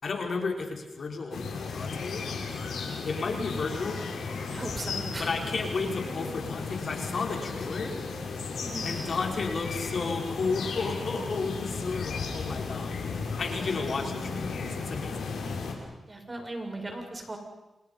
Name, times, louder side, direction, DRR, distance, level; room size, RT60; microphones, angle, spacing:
voice 1, 0.0-2.2 3.0-4.0 5.2-7.9 8.8-12.9 13.4-14.5 14.8-15.3, left 4 dB, 65° left, 2 dB, 4.9 m, -32 dB
sound 1, 1.3-15.7, left 4 dB, 90° left, 5.4 m, -35 dB
voice 2, 4.5-5.3 8.6-8.9 16.1-17.4, right 2 dB, 30° right, 3 dB, 6.8 m, -37 dB
28.5 x 28.0 x 5.7 m, 1.0 s
cardioid pair, 60°, 0 cm